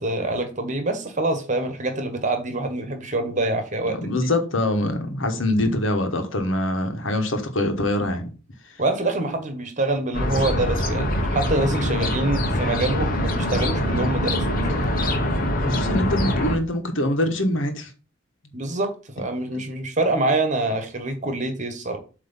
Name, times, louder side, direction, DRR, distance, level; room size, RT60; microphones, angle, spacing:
voice 1, 0.0-4.3 8.8-14.9 18.5-22.0, right 2 dB, 40° right, 1.5 m, -26 dB
voice 2, 4.0-8.3 8.7-8.8 15.6-17.9 19.5-19.6, left 1 dB, 80° left, 1.4 m, -24 dB
sound 1, 10.1-16.6, equal, 45° left, 1.2 m, -23 dB
8.0 x 3.2 x 5.6 m
head